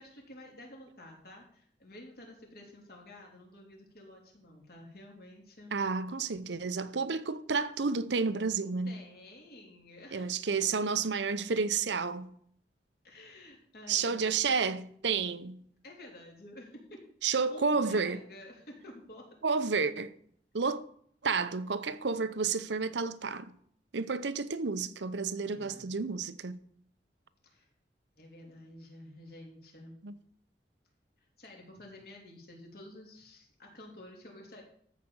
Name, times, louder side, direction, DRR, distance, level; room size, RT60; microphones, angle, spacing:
voice 1, 0.0-5.7 8.9-10.4 13.0-14.2 14.7-14.9 15.8-19.3 25.5-25.9 27.4-27.7 28.2-30.0 31.4-34.6, left 1 dB, 60° left, 3.4 m, -51 dB
voice 2, 5.7-9.0 10.1-12.3 13.9-15.6 17.2-18.2 19.4-20.1 20.5-20.8 21.2-23.5 23.9-26.6 30.0-30.1, right 5 dB, 80° right, 0.8 m, -31 dB
14.0 x 5.0 x 7.2 m
head